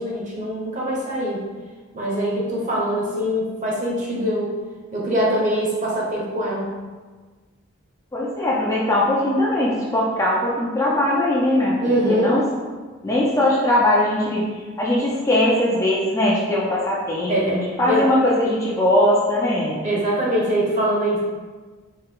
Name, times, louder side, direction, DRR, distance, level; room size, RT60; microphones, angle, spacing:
voice 1, 0.0-1.4 1.9-4.6 4.9-6.8 11.8-12.3 17.3-18.1 19.8-21.2, equal, 35° right, -5 dB, 1.0 m, -23 dB
voice 2, 8.1-12.4 13.0-14.4 14.8-17.4 17.8-19.8, left 1 dB, 15° left, -5 dB, 0.6 m, -20 dB
4.4 x 2.9 x 3.7 m, 1.4 s
head